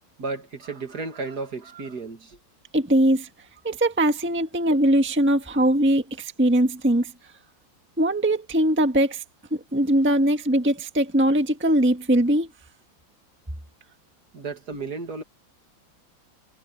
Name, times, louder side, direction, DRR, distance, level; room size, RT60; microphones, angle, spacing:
voice 1, 0.2-2.4 14.3-15.2, right 3 dB, 55° right, 2.6 m, -33 dB
voice 2, 2.7-3.3 3.6-7.1 8.0-9.2 9.5-12.5, right 1 dB, 5° right, 1.2 m, -21 dB
omnidirectional pair, 2.2 m